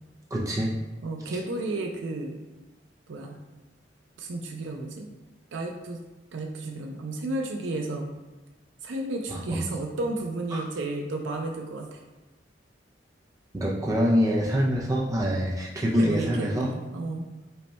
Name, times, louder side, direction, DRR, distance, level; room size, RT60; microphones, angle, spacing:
voice 1, 0.3-0.7 9.3-9.6 10.5-10.6 13.5-16.7, equal, 20° right, -3 dB, 0.4 m, -25 dB
voice 2, 1.0-2.4 3.1-3.4 4.2-5.1 5.5-6.0 6.3-8.1 8.8-12.0 15.9-17.3, right 2 dB, 85° right, 2 dB, 0.5 m, -32 dB
5.4 x 2.2 x 4.2 m, 1.1 s
head